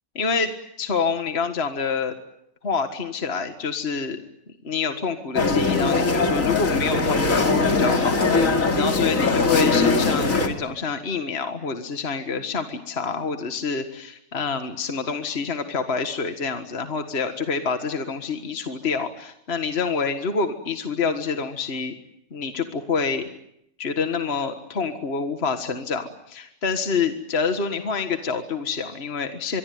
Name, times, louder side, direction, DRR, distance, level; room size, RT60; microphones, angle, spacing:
voice 1, 0.2-0.5 0.8-2.1 2.6-4.2 4.6-8.1 8.7-21.9 22.3-23.3 23.8-29.6, left 5 dB, 45° left, 7 dB, 1.9 m, -27 dB
sound 1, 5.4-10.5, left 3 dB, 60° left, 3.0 m, -21 dB
25.0 x 23.5 x 9.5 m, 0.78 s
omnidirectional pair, 1.6 m